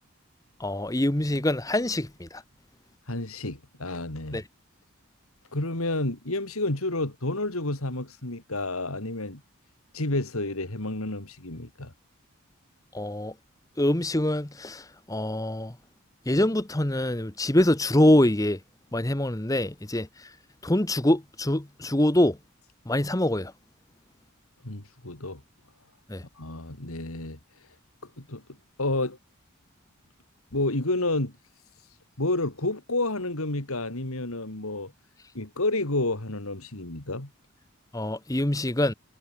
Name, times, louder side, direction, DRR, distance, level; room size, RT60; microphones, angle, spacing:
voice 1, 0.6-2.4 4.3-4.4 12.9-13.3 13.8-15.7 16.3-18.6 18.9-20.1 20.6-22.4 22.9-23.5 26.1-26.2 37.9-38.9, left 1 dB, 15° left, 1.0 m, -24 dB
voice 2, 3.1-4.4 5.5-9.4 9.9-11.9 24.6-25.4 26.3-27.7 28.2-28.4 28.8-29.2 30.5-31.3 32.2-34.9 35.3-37.3, left 2 dB, 80° left, 3.2 m, -30 dB
head